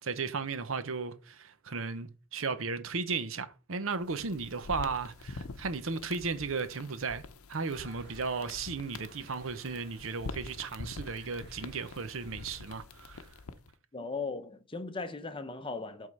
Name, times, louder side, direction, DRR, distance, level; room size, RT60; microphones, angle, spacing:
voice 1, 0.0-7.2 7.5-13.3, right 4 dB, 70° right, 0.8 m, -35 dB
sound 1, 3.9-13.7, left 3 dB, 80° left, 0.7 m, -46 dB
sound 2, 7.6-12.6, right 3 dB, 50° right, 2.5 m, -57 dB
voice 2, 13.9-16.1, left 4 dB, 25° left, 0.6 m, -38 dB
7.8 x 3.7 x 5.5 m
head